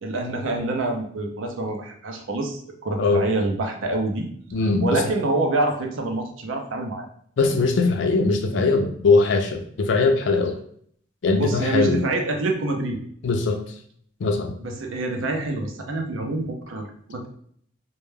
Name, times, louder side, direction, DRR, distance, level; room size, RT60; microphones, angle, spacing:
voice 1, 0.0-4.3 4.8-7.0 11.3-13.0 14.6-17.3, right 2 dB, 85° right, 3 dB, 0.5 m, -26 dB
voice 2, 4.5-4.9 7.4-10.5 11.2-12.0 13.2-13.6 14.2-14.5, left 3 dB, 70° left, 4 dB, 0.4 m, -20 dB
2.2 x 2.1 x 3.1 m, 0.63 s
head